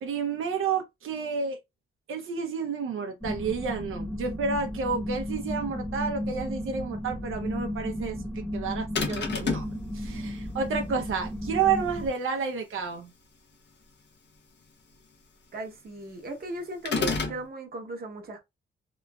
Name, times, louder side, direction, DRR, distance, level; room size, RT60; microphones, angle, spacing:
voice 1, 0.0-1.6 2.1-9.6 9.9-13.1, right 5 dB, 80° right, 0.6 m, -30 dB
sound 1, 3.2-12.1, equal, 10° left, 1.0 m, -34 dB
sound 2, 9.0-9.8 16.9-17.4, left 4 dB, 60° left, 0.8 m, -28 dB
voice 2, 15.5-18.4, right 2 dB, 50° right, 0.8 m, -37 dB
3.0 x 2.4 x 2.2 m
wide cardioid pair, 130°, 21 cm